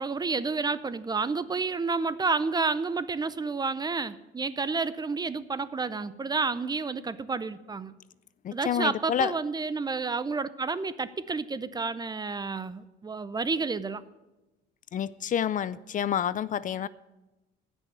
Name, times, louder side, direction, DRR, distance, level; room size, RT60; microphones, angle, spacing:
voice 1, 0.0-7.9 8.5-14.0, right 4 dB, 20° right, 16 dB, 0.5 m, -30 dB
voice 2, 8.4-9.3 14.9-16.9, left 9 dB, 40° left, 18 dB, 0.4 m, -28 dB
15.5 x 6.3 x 8.7 m, 1.0 s
cardioid pair, 130°, 20 cm